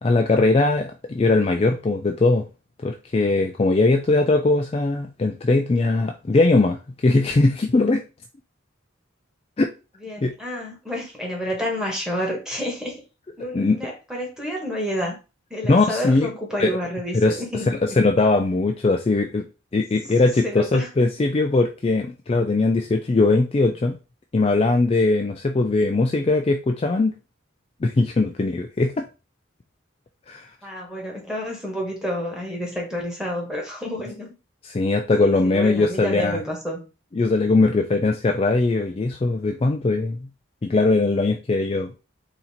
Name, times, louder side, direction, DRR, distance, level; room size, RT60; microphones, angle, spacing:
voice 1, 0.0-2.4 2.8-8.0 9.6-9.7 10.2-10.3 13.5-13.8 15.6-16.3 16.6-16.7 17.1-19.5 19.7-23.9 24.3-27.1 27.8-29.1 30.3-30.5 34.7-36.4 37.2-40.3 40.6-41.9, left 3 dB, 30° left, 4 dB, 0.3 m, -20 dB
voice 2, 10.0-13.0 13.4-15.2 15.5-18.0 20.4-20.9 30.6-34.3 35.2-36.8, equal, 5° right, -1 dB, 1.4 m, -29 dB
3.9 x 2.9 x 4.2 m, 0.30 s
head